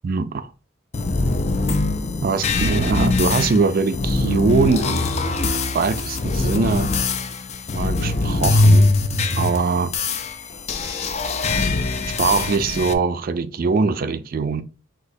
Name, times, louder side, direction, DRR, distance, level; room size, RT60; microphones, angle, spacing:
voice 1, 0.0-0.5 2.2-5.1 5.7-6.9 7.7-8.9 9.4-9.9 12.2-14.6, right 4 dB, 45° right, 0.3 m, -22 dB
sound 1, 0.9-12.9, left 2 dB, 30° left, 0.4 m, -22 dB
6.1 x 2.8 x 2.7 m
head